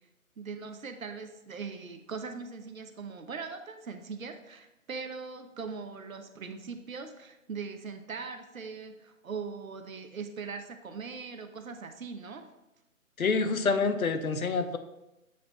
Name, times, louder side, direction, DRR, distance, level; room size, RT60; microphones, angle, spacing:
voice 1, 0.4-12.5, right 5 dB, 70° right, 7 dB, 0.9 m, -40 dB
voice 2, 13.2-14.8, left 4 dB, 75° left, 9 dB, 0.8 m, -27 dB
7.9 x 3.4 x 4.0 m, 0.95 s
figure-of-eight pair, 160°, 42 cm